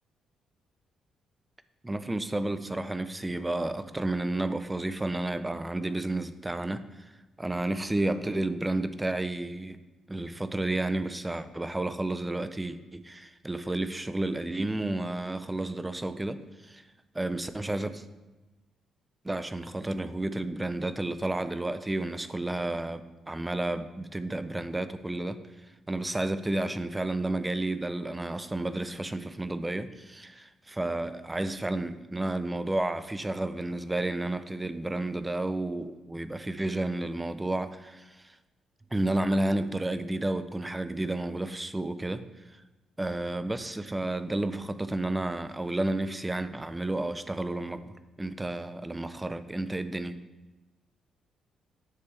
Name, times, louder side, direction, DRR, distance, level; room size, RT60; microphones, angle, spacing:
voice 1, 1.8-6.9 7.4-9.8 10.1-16.8 17.1-18.0 19.2-25.4 25.9-38.3 38.9-42.2 43.0-47.9 48.2-50.2, right 2 dB, 15° right, 12 dB, 0.4 m, -31 dB
9.3 x 3.3 x 3.3 m, 1.1 s
cardioid pair, 90°, 0 cm